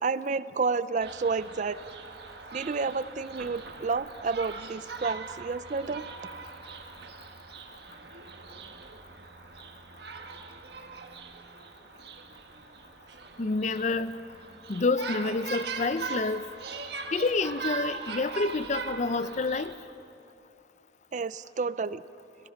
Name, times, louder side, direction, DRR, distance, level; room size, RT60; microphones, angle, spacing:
voice 1, 0.0-1.8 2.5-6.0 21.1-22.0, right 4 dB, 40° right, 16 dB, 0.4 m, -30 dB
sound 1, 1.0-19.8, right 4 dB, 65° right, 1.4 m, -41 dB
voice 2, 13.4-14.2 14.7-16.4 17.1-19.7, left 3 dB, 40° left, 14 dB, 0.6 m, -28 dB
30.0 x 18.5 x 5.8 m, 2.8 s
head